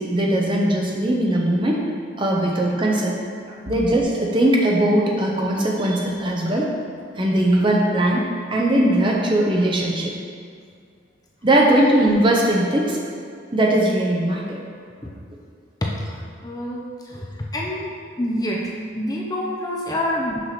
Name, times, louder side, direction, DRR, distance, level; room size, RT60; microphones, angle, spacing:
voice 1, 0.0-1.8 2.2-3.2 3.7-6.7 7.1-10.1 11.4-13.0 13.5-14.6 19.9-20.0, right 1 dB, 25° right, -2 dB, 0.9 m, -20 dB
voice 2, 16.4-17.9 18.2-20.4, left 1 dB, 20° left, -2 dB, 0.6 m, -27 dB
6.1 x 4.7 x 5.8 m, 2.2 s
head